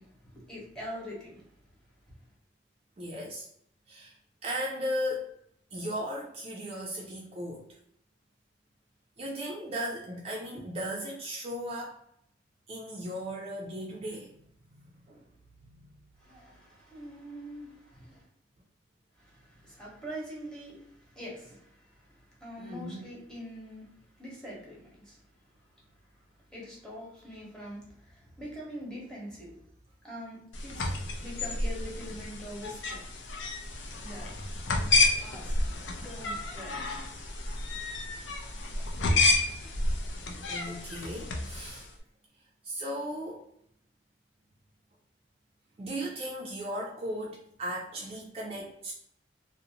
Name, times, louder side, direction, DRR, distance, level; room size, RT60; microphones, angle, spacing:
voice 1, 0.0-1.4 16.2-18.2 19.2-23.9 24.2-25.2 26.5-29.6 30.0-33.0 34.0-34.3 35.2-35.5 36.0-37.0, equal, 5° left, -5 dB, 0.9 m, -44 dB
voice 2, 3.0-3.5 3.9-4.1 4.4-5.3 5.7-7.7 9.2-12.0 12.7-14.3 14.7-15.2 15.6-15.9 22.6-23.1 34.9-35.3 38.7-39.1 39.4-39.5 40.5-41.9 42.6-43.4 45.8-49.0, equal, 35° right, -3 dB, 0.4 m, -37 dB
sound 1, 30.5-41.9, left 2 dB, 85° left, 0.5 m, -30 dB
2.5 x 2.0 x 2.7 m, 0.70 s
head